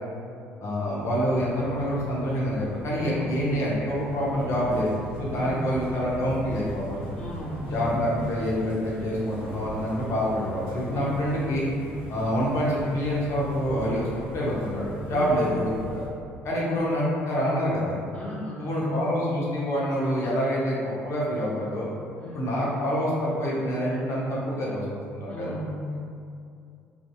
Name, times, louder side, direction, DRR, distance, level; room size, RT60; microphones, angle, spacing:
voice 1, 0.6-7.2 7.7-11.7 12.1-14.1 14.3-15.7 16.4-18.0 18.6-21.9 22.3-24.9 25.1-25.5, equal, 45° left, -6 dB, 0.7 m, -26 dB
sound 1, 1.0-16.1, right 2 dB, 80° left, 1.2 m, -39 dB
voice 2, 3.0-3.3 5.3-5.8 7.2-8.3 10.9-11.3 15.1-15.5 16.6-16.8 18.1-19.0 22.2-22.6 25.3-25.9, left 1 dB, 15° left, -7 dB, 0.5 m, -36 dB
2.6 x 2.6 x 2.2 m, 2.4 s
figure-of-eight pair, 55°, 7 cm